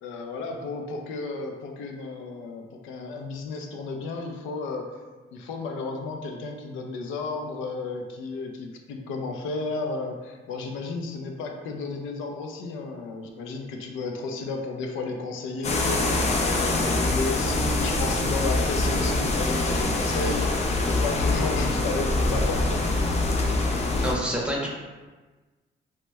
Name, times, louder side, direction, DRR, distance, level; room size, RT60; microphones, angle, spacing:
voice 1, 0.0-4.9 5.3-22.9, left 3 dB, 90° left, 3 dB, 0.4 m, -33 dB
sound 1, 15.6-24.1, left 2 dB, 35° left, 0.4 m, -24 dB
voice 2, 24.0-24.7, equal, 5° right, -3 dB, 0.6 m, -27 dB
2.9 x 2.1 x 3.3 m, 1.3 s
cardioid pair, 90°, 20 cm